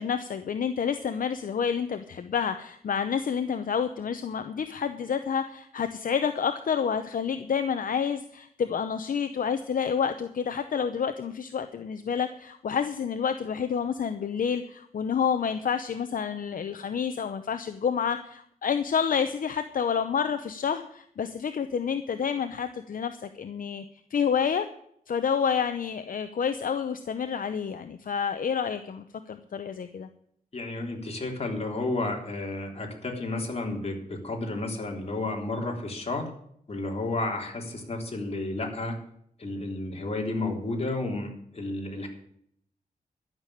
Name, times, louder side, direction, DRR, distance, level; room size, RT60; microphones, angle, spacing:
voice 1, 0.0-23.8 24.1-24.7 25.1-30.1, left 7 dB, 70° left, 9 dB, 0.8 m, -29 dB
voice 2, 30.5-36.3 36.7-39.0 39.4-42.1, left 2 dB, 45° left, 1 dB, 3.5 m, -32 dB
12.5 x 6.8 x 10.0 m, 0.69 s
cardioid pair, 80°, 15 cm